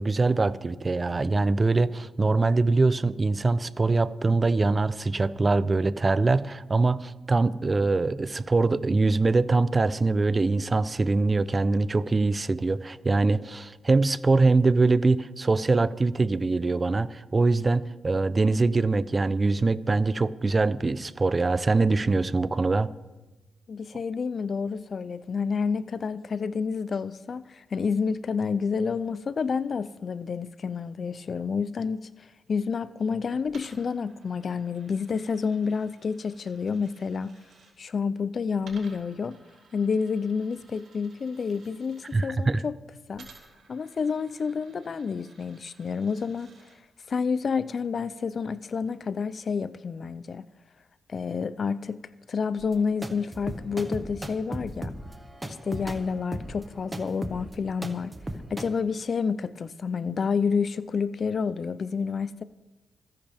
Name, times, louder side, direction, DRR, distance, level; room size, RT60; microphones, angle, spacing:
voice 1, 0.0-22.9 42.1-42.6, right 3 dB, 30° right, 0.6 m, -23 dB
voice 2, 23.7-32.1 32.5-37.3 37.8-39.4 39.7-42.8 43.1-43.3 43.7-46.5 47.1-50.4 51.1-52.0 52.3-54.9 55.5-58.1 58.5-62.4, left 5 dB, 50° left, 0.5 m, -29 dB
Coin (dropping), 33.4-37.7 38.6-42.1 43.1-46.8, right 4 dB, 75° right, 5.1 m, -56 dB
sound 1, 52.6-58.7, right 1 dB, 15° right, 1.6 m, -36 dB
26.5 x 10.5 x 3.5 m
cardioid pair, 70°, 0 cm